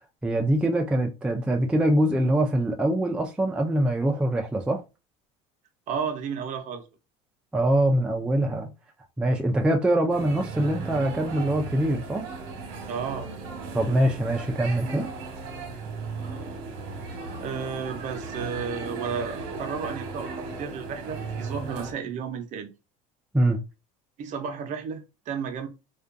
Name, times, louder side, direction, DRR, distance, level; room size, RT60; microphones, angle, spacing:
voice 1, 0.2-4.8 7.5-8.7 9.2-12.2 13.7-15.1 23.3-23.6, right 1 dB, 5° right, 0.3 m, -23 dB
voice 2, 5.9-6.8 12.9-13.3 17.4-22.7 24.2-25.7, right 6 dB, 50° right, 0.6 m, -33 dB
sound 1, 10.1-21.9, right 4 dB, 70° right, 0.9 m, -36 dB
2.5 x 2.2 x 2.5 m
supercardioid pair, 120°, 17 cm